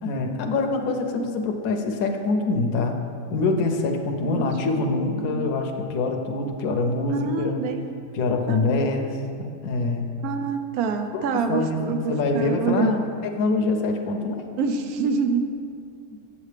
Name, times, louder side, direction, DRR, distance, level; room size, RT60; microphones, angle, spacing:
voice 1, 0.0-3.0 3.3-7.6 8.1-9.1 9.4-10.1 11.1-12.9 13.2-14.4, left 3 dB, 70° left, 4 dB, 1.1 m, -25 dB
voice 2, 4.8-5.5 7.1-7.8 8.5-8.8 10.2-13.1 14.6-15.5, right 5 dB, 75° right, 6 dB, 1.1 m, -27 dB
8.2 x 7.5 x 3.3 m, 2.3 s
omnidirectional pair, 1.6 m